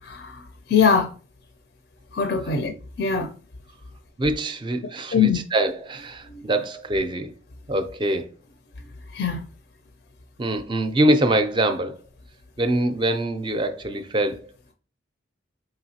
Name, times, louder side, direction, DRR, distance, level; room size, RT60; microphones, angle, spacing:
voice 1, 0.0-1.1 2.1-3.3 5.1-5.4 6.3-6.4 9.1-9.5, left 6 dB, 60° left, 0.4 m, -22 dB
voice 2, 4.2-7.3 7.7-8.3 10.4-12.0 12.6-14.4, right 1 dB, 25° right, 0.4 m, -24 dB
4.9 x 3.1 x 2.7 m
head